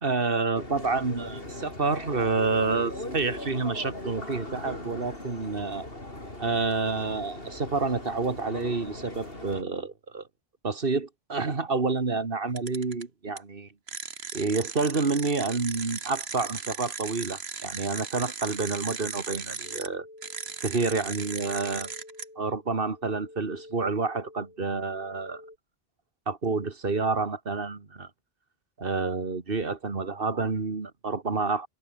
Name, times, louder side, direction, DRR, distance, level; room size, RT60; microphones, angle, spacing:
voice 1, 0.0-5.9 6.4-10.2 10.6-13.7 14.3-20.1 20.6-21.9 22.4-25.4 26.3-28.1 28.8-31.7, right 4 dB, 60° right, 2.2 m, -29 dB
sound 1, 0.5-9.6, left 1 dB, 65° left, 5.9 m, -39 dB
sound 2, 12.6-13.0 13.4-13.5 13.9-19.9 20.2-22.2, right 5 dB, 80° right, 1.8 m, -37 dB
sound 3, 19.6-25.6, left 1 dB, 35° left, 3.6 m, -50 dB
omnidirectional pair, 1.0 m